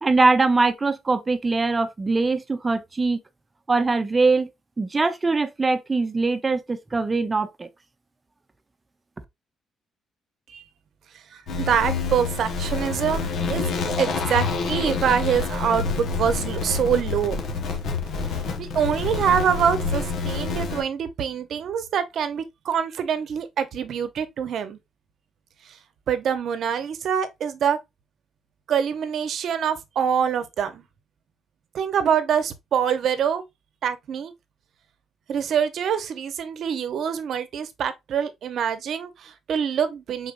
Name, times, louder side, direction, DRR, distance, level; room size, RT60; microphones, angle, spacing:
voice 1, 0.0-3.2 3.7-4.5 4.8-7.7, right 3 dB, 25° right, 0.7 m, -22 dB
voice 2, 11.3-13.7 14.0-17.4 18.3-24.8 25.6-25.8 26.1-27.8 28.7-30.8 31.7-33.4 33.8-34.3 35.3-40.3, right 8 dB, 65° right, 0.8 m, -25 dB
sound 1, 11.5-20.8, left 4 dB, 70° left, 1.1 m, -27 dB
5.0 x 4.0 x 2.5 m
cardioid pair, 90°, 0 cm